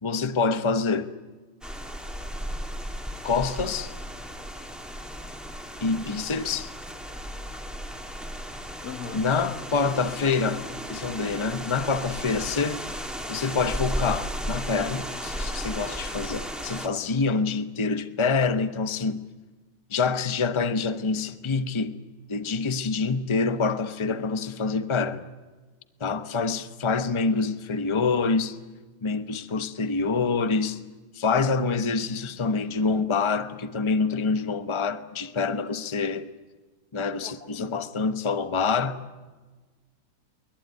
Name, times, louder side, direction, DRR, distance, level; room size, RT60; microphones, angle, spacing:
voice 1, 0.0-1.1 3.2-3.9 5.8-6.7 9.1-10.6 10.9-12.8 13.3-19.2 19.9-21.9 22.3-25.2 26.0-28.6 29.0-30.8 31.1-36.3 36.9-39.0, left 4 dB, 25° left, 0.9 m, -26 dB
sound 1, 1.6-16.9, equal, ahead, 2.1 m, -35 dB
voice 2, 8.8-9.3 37.2-37.8, left 6 dB, 80° left, 2.3 m, -39 dB
23.0 x 21.0 x 9.3 m
omnidirectional pair, 1.6 m